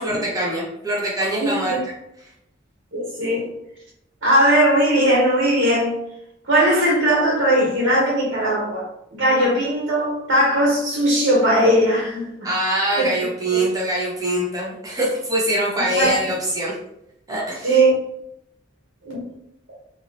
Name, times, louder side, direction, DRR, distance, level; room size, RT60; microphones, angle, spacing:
voice 1, 0.0-1.8 12.4-16.7 17.3-17.8, right 1 dB, 20° right, -5 dB, 1.1 m, -23 dB
voice 2, 1.4-1.8 2.9-3.5 4.2-5.9 6.5-8.8 9.1-12.5 12.9-13.0 13.5-13.6 15.8-16.3 17.6-17.9 19.0-19.3, right 1 dB, 80° right, -4 dB, 1.2 m, -19 dB
3.6 x 3.1 x 2.8 m, 0.80 s
head